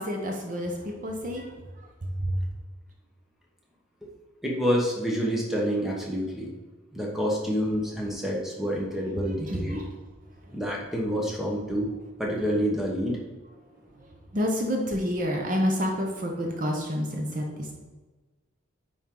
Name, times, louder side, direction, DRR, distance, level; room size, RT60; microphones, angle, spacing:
voice 1, 0.0-1.9 2.2-2.4 9.5-9.9 10.4-10.6 14.0-17.7, equal, 40° right, 2 dB, 0.8 m, -29 dB
voice 2, 4.4-6.5 6.9-9.8 10.5-11.9 12.2-13.2, equal, ahead, -2 dB, 1.2 m, -28 dB
9.2 x 4.4 x 3.8 m, 1.3 s
head